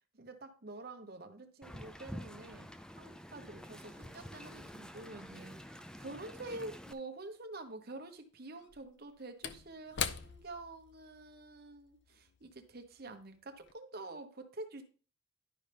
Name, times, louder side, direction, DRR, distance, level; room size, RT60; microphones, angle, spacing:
voice 1, 0.1-2.7 3.0-14.8, right 2 dB, 50° right, 6 dB, 1.1 m, -47 dB
Wind, 1.6-6.9, equal, 5° left, 0.4 m, -48 dB
Slam / Wood, 7.0-7.1 8.5-13.2 13.6-13.7, left 7 dB, 55° left, 0.5 m, -43 dB
10.5 x 5.6 x 3.4 m, 0.38 s
head